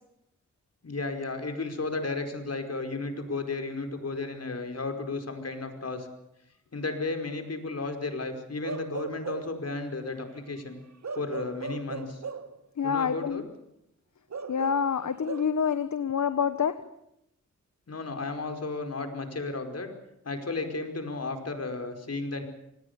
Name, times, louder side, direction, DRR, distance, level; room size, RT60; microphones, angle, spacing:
voice 1, 0.8-6.1 6.7-10.8 11.2-12.2 12.8-13.4 17.9-19.9 20.2-22.4, left 3 dB, 55° left, 6 dB, 5.1 m, -33 dB
Bark / Livestock farm animals working animals, 8.6-9.6 11.0-12.6 14.3-15.4, right 5 dB, 65° right, 1.5 m, -37 dB
voice 2, 12.8-13.4 14.5-16.7, left 7 dB, 75° left, 11 dB, 1.2 m, -27 dB
26.0 x 19.5 x 8.3 m, 0.81 s
cardioid pair, 65°, 30 cm